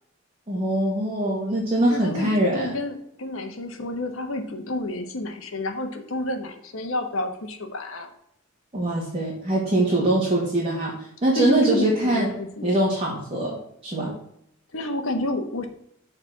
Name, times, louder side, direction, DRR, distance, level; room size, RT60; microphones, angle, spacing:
voice 1, 0.5-2.7 8.7-10.9 11.2-12.3 12.6-13.6 13.8-14.1, right 1 dB, 30° right, -6 dB, 1.8 m, -23 dB
voice 2, 1.9-8.1 11.3-12.8 14.7-15.7, left 1 dB, 75° left, 6 dB, 1.2 m, -29 dB
6.7 x 4.4 x 6.1 m, 0.74 s
head